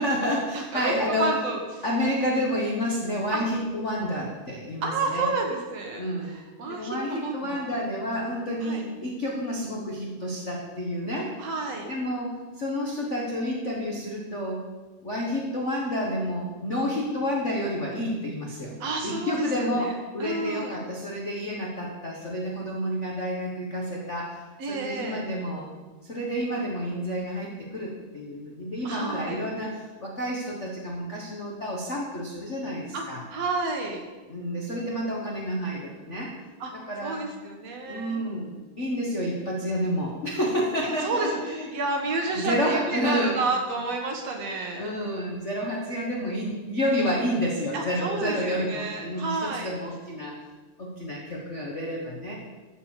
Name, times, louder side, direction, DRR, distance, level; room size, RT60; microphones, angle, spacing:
voice 1, 0.0-1.3 1.8-5.3 6.0-6.3 6.7-11.3 11.8-14.7 15.0-18.7 19.0-24.4 24.7-25.7 26.0-33.2 34.3-36.3 36.7-37.2 37.9-41.7 42.3-43.4 44.4-50.4 50.8-52.3, equal, 85° left, -3 dB, 0.6 m, -29 dB
voice 2, 0.5-1.6 3.3-3.4 4.8-7.6 8.6-8.8 11.4-11.9 18.8-19.9 20.2-20.8 24.6-25.2 28.8-29.4 32.9-33.0 33.3-34.0 36.6-38.2 40.8-41.4 41.7-44.9 47.7-49.7, right 3 dB, 60° right, 2 dB, 2.1 m, -30 dB
13.0 x 4.8 x 7.4 m, 1.3 s
omnidirectional pair, 3.9 m